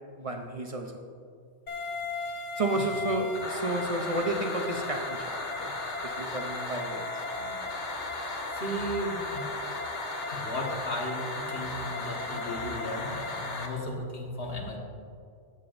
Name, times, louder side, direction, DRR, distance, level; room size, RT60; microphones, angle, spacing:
voice 1, 0.2-1.0 2.6-5.3 5.6-5.7 6.0-7.0, right 2 dB, 35° right, 3 dB, 0.6 m, -31 dB
sound 1, 1.7-13.7, left 3 dB, 80° left, 1.5 m, -35 dB
voice 2, 8.5-9.4 10.3-14.8, equal, 55° left, -1 dB, 1.7 m, -35 dB
13.5 x 9.7 x 2.6 m, 2.4 s
omnidirectional pair, 1.2 m